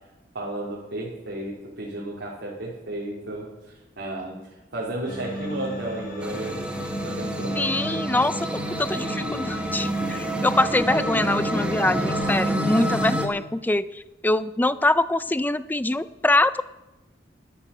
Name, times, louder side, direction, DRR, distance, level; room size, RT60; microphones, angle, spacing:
voice 1, 0.3-3.5 4.0-6.6 7.0-7.9, right 1 dB, 75° right, -5 dB, 2.8 m, -33 dB
sound 1, 5.0-12.6, equal, 50° left, 4.5 m, -36 dB
sound 2, 6.2-13.3, right 1 dB, 5° right, 1.2 m, -28 dB
voice 2, 7.6-8.5 8.8-16.6, left 2 dB, 10° left, 15 dB, 0.4 m, -24 dB
13.5 x 12.0 x 5.5 m, 1.1 s
head